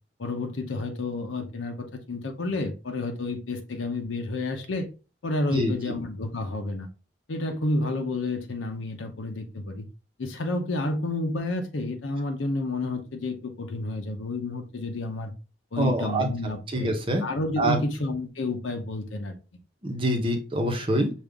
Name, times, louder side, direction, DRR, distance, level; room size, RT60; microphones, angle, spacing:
voice 1, 0.2-4.9 5.2-6.9 7.3-9.9 10.2-15.3 15.7-16.9 17.2-19.3, left 2 dB, 90° left, 0.7 m, -30 dB
voice 2, 15.8-16.3 16.7-17.2 17.6-17.8 19.8-21.1, right 1 dB, 30° right, 0.8 m, -25 dB
5.3 x 2.4 x 3.5 m
head